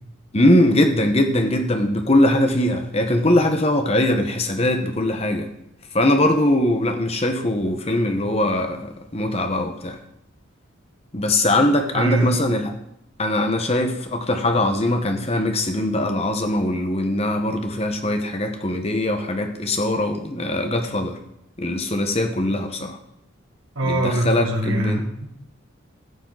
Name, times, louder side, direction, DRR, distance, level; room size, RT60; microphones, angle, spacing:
voice 1, 0.3-5.5 5.9-10.0 11.1-12.7 13.2-21.1 21.6-23.0 23.8-25.0, left 1 dB, 30° left, 6 dB, 1.1 m, -21 dB
voice 2, 11.9-12.4 23.8-25.3, right 1 dB, 80° right, 0 dB, 1.9 m, -23 dB
14.5 x 6.7 x 4.0 m, 0.78 s
head